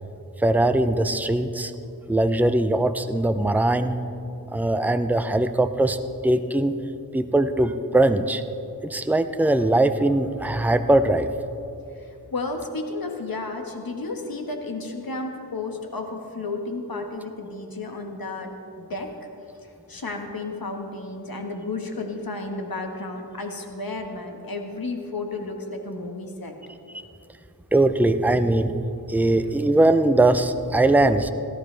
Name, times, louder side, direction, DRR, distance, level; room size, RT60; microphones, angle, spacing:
voice 1, 0.4-1.7 2.1-4.0 4.5-6.0 6.2-6.8 7.1-8.4 8.8-11.3 27.7-28.8 29.1-31.3, right 2 dB, 5° right, 9 dB, 0.6 m, -20 dB
voice 2, 11.9-19.1 19.6-26.5 29.3-29.4, left 3 dB, 60° left, 3 dB, 1.6 m, -32 dB
17.0 x 13.0 x 3.4 m, 2.7 s
cardioid pair, 45°, 39 cm